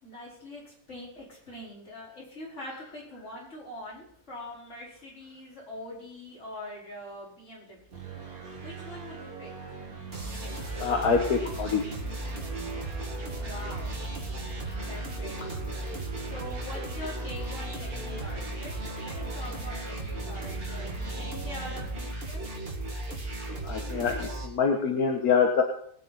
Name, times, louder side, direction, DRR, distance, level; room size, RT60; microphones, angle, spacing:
voice 1, 0.0-8.1 8.6-9.5 13.4-14.0 14.9-15.4 16.2-22.4, left 1 dB, 50° left, -5 dB, 5.2 m, -43 dB
sound 1, 7.9-21.9, right 3 dB, 70° right, 2.5 m, -43 dB
sound 2, 10.1-24.5, right 1 dB, 40° right, 2.6 m, -36 dB
voice 2, 10.5-11.8 14.7-14.9 23.2-23.3 23.6-25.6, left 5 dB, 85° left, 2 dB, 1.8 m, -26 dB
20.5 x 9.0 x 4.2 m, 0.62 s
omnidirectional pair, 1.5 m